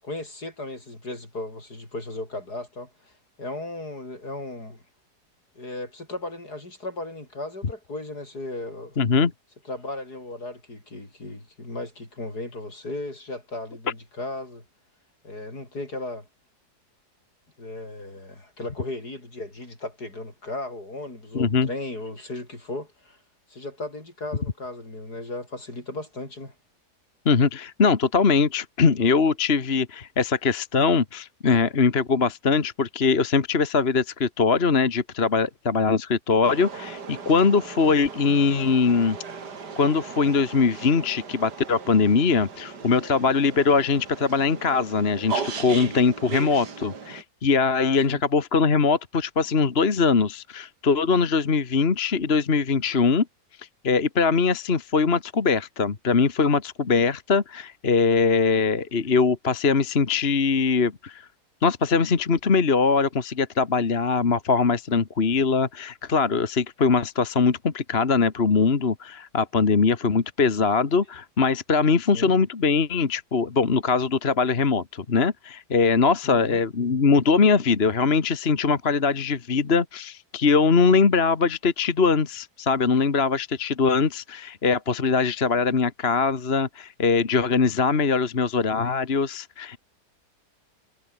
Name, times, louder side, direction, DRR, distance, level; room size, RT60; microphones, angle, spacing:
voice 1, 0.0-4.8 5.5-9.0 9.6-14.6 15.2-16.3 17.6-23.2 23.5-26.5 48.0-48.2 72.1-72.3 76.2-76.6, left 2 dB, 70° left, 8.1 m, -36 dB
voice 2, 9.0-9.3 21.3-21.7 27.2-39.2 39.8-53.2 53.6-61.2 61.6-89.8, left 5 dB, 40° left, 1.7 m, -22 dB
sound 1, 36.4-47.2, right 5 dB, 80° right, 3.1 m, -37 dB
omnidirectional pair, 1.7 m